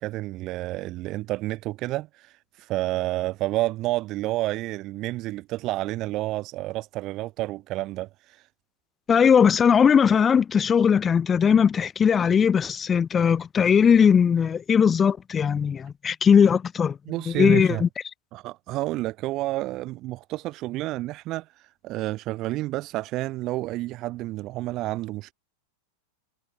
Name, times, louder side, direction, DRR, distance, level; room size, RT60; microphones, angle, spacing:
voice 1, 0.0-8.4 17.1-17.8 18.3-25.3, right 17 dB, 35° right, 0.9 m, -30 dB
voice 2, 9.1-17.0 17.3-17.9, left 7 dB, 20° left, 0.3 m, -19 dB
figure-of-eight pair, 90°, 0 cm